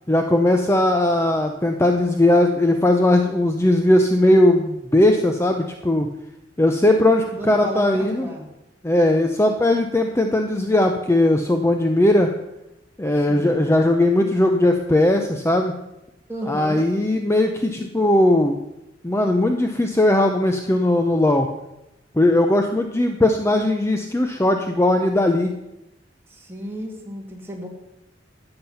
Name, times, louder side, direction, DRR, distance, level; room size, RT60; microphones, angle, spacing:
voice 1, 0.1-6.1 6.6-8.3 8.8-12.3 13.0-15.7 16.5-18.6 19.0-21.5 22.2-25.5, left 1 dB, 15° left, 4 dB, 0.7 m, -18 dB
voice 2, 7.2-8.5 13.2-13.6 16.3-16.9 26.3-27.7, equal, 15° right, -1 dB, 2.3 m, -33 dB
13.5 x 8.8 x 5.7 m, 0.91 s
head